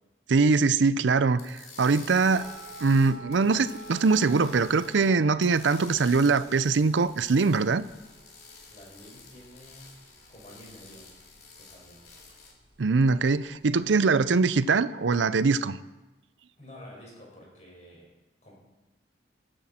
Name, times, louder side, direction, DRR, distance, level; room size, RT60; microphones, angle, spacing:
voice 1, 0.3-2.5 2.8-7.9 12.8-15.8, right 4 dB, 90° right, 15 dB, 0.5 m, -22 dB
sound 1, 1.4-5.1 5.4-12.5, left 4 dB, 60° left, 3.1 m, -50 dB
sound 2, 2.3-13.8, right 1 dB, 30° right, 2.5 m, -49 dB
voice 2, 8.7-10.0 10.3-11.0 11.6-12.0 16.6-18.1 18.4-18.5, equal, 40° left, -3 dB, 5.5 m, -49 dB
19.5 x 12.5 x 4.3 m, 1.1 s
head